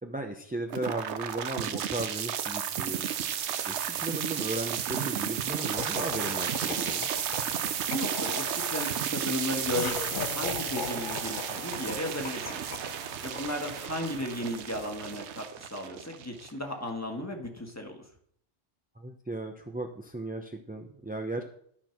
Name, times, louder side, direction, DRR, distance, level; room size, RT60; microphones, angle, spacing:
voice 1, 0.0-3.1 3.7-7.1 19.0-21.4, right 2 dB, 10° right, 3 dB, 0.4 m, -36 dB
sound 1, 0.7-16.7, right 9 dB, 75° right, 1.0 m, -33 dB
Laughter, 5.8-14.1, left 6 dB, 50° left, 0.9 m, -39 dB
voice 2, 7.9-12.6 13.2-18.0, left 1 dB, 15° left, 2 dB, 1.4 m, -35 dB
12.0 x 4.5 x 5.8 m, 0.64 s
omnidirectional pair, 1.2 m